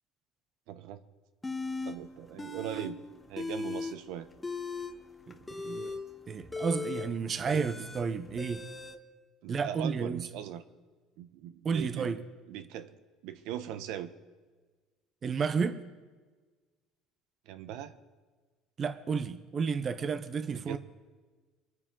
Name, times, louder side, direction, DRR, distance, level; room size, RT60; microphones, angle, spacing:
voice 1, 0.7-1.0 1.8-3.0 3.3-4.3 7.5-7.9 9.4-10.6 11.2-12.2 12.5-12.9 13.2-14.1 17.5-17.9 20.5-20.8, right 11 dB, 75° right, 0.9 m, -40 dB
sound 1, 1.4-2.0 2.4-2.9 3.2-4.0 4.3-9.0, left 3 dB, 10° left, 1.0 m, -38 dB
voice 2, 5.3-6.0 6.3-8.6 9.5-10.3 11.6-12.2 15.2-15.8 18.8-20.8, right 5 dB, 30° right, 0.7 m, -32 dB
25.0 x 9.6 x 3.8 m
cardioid pair, 150°, 0 cm